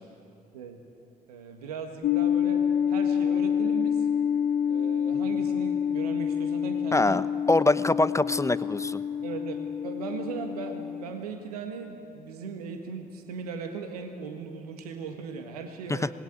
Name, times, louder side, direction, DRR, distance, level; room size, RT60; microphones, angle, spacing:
voice 1, 1.3-2.6 2.9-4.1 4.7-7.2 9.2-9.6 9.8-16.1, right 5 dB, 80° right, 5 dB, 1.6 m, -38 dB
sound 1, 2.0-11.1, left 8 dB, 60° left, 1.1 m, -27 dB
voice 2, 6.9-9.0 15.9-16.1, left 2 dB, 15° left, 15 dB, 0.9 m, -24 dB
26.0 x 20.5 x 9.2 m, 2.6 s
figure-of-eight pair, 40°, 19 cm